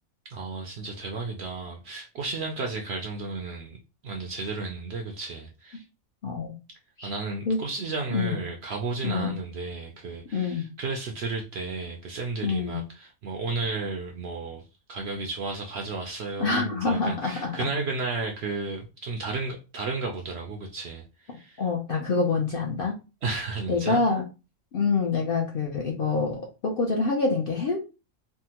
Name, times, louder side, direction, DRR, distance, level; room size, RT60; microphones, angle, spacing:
voice 1, 0.3-3.8 4.0-5.8 7.0-21.6 23.2-24.0, right 3 dB, 65° right, 0.6 m, -33 dB
voice 2, 6.2-6.6 7.0-7.1 7.5-7.6 8.1-8.4 9.0-9.4 10.3-10.6 12.4-12.8 16.4-17.7 21.6-22.9 23.7-24.2 24.7-27.8, left 4 dB, 55° left, 0.6 m, -26 dB
3.5 x 2.1 x 2.8 m
omnidirectional pair, 1.5 m